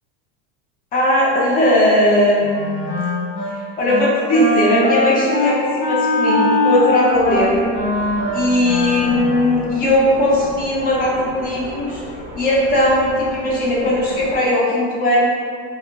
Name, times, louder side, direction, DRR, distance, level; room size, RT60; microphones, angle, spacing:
voice 1, 0.9-2.9 3.8-7.6 8.3-12.0 12.3-15.3, left 1 dB, 25° left, -5 dB, 0.5 m, -18 dB
Wind instrument woodwind instrument, 2.4-3.5 3.8-4.1 4.3-9.6, left 1 dB, 60° left, 0.7 m, -21 dB
sound 1, 7.1-14.4, equal, 20° right, 0.5 m, -35 dB
2.6 x 2.3 x 2.8 m, 2.1 s
supercardioid pair, 155°, 35 cm